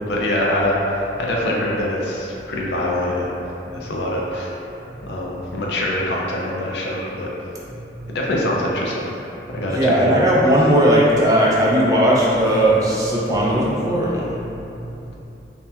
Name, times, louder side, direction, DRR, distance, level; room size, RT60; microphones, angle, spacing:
voice 1, 0.0-3.4 3.7-4.6 5.0-7.3 8.1-9.1 9.5-10.2, left 1 dB, 75° left, -4 dB, 0.4 m, -24 dB
voice 2, 9.7-14.3, right 1 dB, 20° right, -5 dB, 0.3 m, -17 dB
2.7 x 2.1 x 2.3 m, 2.9 s
head